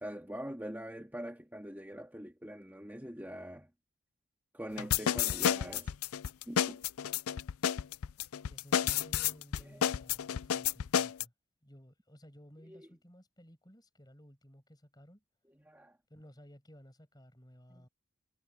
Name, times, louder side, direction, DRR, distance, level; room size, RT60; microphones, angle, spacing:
voice 1, 0.0-3.7 4.5-5.9 6.5-6.8 9.7-9.8 12.6-12.9 15.5-16.0 17.7-17.9, equal, 10° right, 1.8 m, -44 dB
sound 1, 4.8-11.2, left 9 dB, 90° left, 0.5 m, -30 dB
voice 2, 8.5-11.3 11.6-15.2 16.1-17.9, equal, 20° left, 6.8 m, -56 dB
head